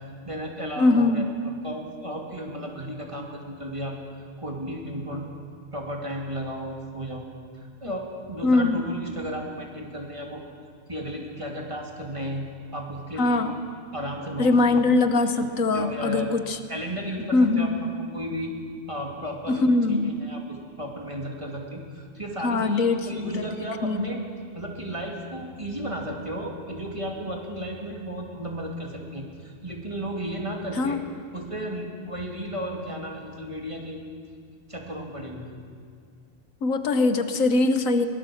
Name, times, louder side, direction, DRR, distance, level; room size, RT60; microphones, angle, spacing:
voice 1, 0.2-1.2 1.6-4.0 4.4-5.3 5.7-7.2 7.5-10.4 10.9-13.5 13.9-14.8 15.4-15.5 15.7-16.3 16.7-17.9 18.1-18.5 18.9-24.2 24.5-31.0 31.3-34.1 34.7-35.5, equal, 25° right, 0 dB, 2.7 m, -34 dB
voice 2, 0.8-1.3 8.4-8.8 13.2-13.5 14.4-16.6 17.3-17.8 19.5-20.2 22.4-24.1 30.8-31.0 36.6-38.1, left 3 dB, 85° left, 9 dB, 1.6 m, -22 dB
22.0 x 18.0 x 7.2 m, 2.2 s
omnidirectional pair, 1.4 m